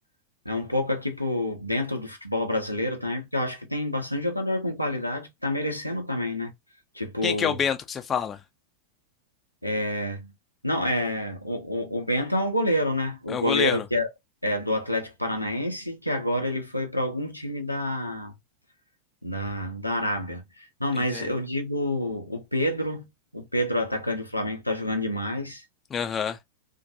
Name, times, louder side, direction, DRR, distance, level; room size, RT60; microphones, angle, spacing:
voice 1, 0.4-6.5 6.9-7.6 9.6-10.3 10.6-14.1 14.4-18.3 19.2-25.6, left 1 dB, 90° left, 0.6 m, -28 dB
voice 2, 7.2-8.4 13.3-13.8 21.1-21.3 25.9-26.4, left 7 dB, 25° left, 0.4 m, -27 dB
2.5 x 2.2 x 2.6 m
figure-of-eight pair, 90°, 0 cm